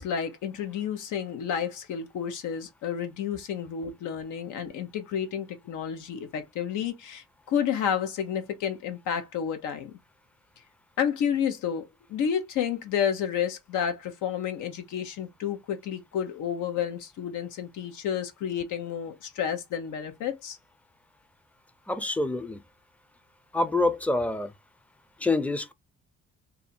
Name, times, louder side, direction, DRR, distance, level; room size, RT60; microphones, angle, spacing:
voice 1, 0.0-9.9 11.0-20.6, left 8 dB, 85° left, 0.9 m, -30 dB
voice 2, 21.9-22.6 23.5-24.5 25.2-25.7, left 2 dB, 5° left, 0.5 m, -26 dB
2.6 x 2.6 x 4.2 m
cardioid pair, 90°, 30 cm